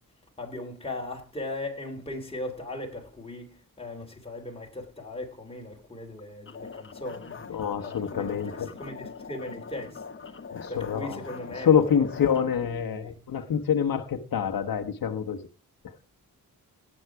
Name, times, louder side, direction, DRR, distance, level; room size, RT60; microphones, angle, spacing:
voice 1, 0.4-7.4 7.8-10.0 10.7-12.0 12.8-13.1, left 1 dB, 15° left, 3.3 m, -38 dB
sound 1, 6.5-12.4, left 5 dB, 35° left, 1.1 m, -42 dB
voice 2, 7.5-8.7 10.5-11.3 11.5-15.4 15.8-16.0, left 8 dB, 85° left, 1.3 m, -26 dB
17.0 x 7.7 x 4.8 m
wide cardioid pair, 150°, 34 cm